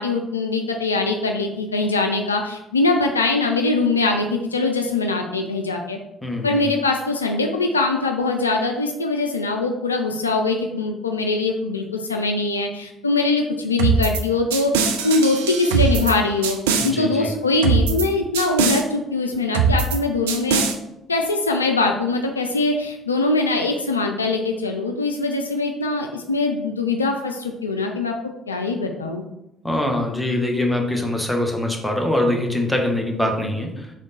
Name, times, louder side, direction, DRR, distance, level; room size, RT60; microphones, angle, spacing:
voice 1, 0.0-6.0 6.4-16.6 16.8-20.6 21.1-28.2 28.5-29.2, left 3 dB, 90° left, 3 dB, 0.3 m, -22 dB
voice 2, 6.2-6.6 16.8-17.3 29.6-33.9, left 1 dB, 5° left, 1 dB, 1.1 m, -23 dB
sound 1, 13.8-14.2 14.5-16.1 16.4-16.9 17.6-18.1 18.3-18.8 19.5-20.0 20.3-20.7, right 5 dB, 75° right, 0.4 m, -21 dB
3.6 x 3.6 x 4.0 m, 0.88 s
figure-of-eight pair, 50°, 0 cm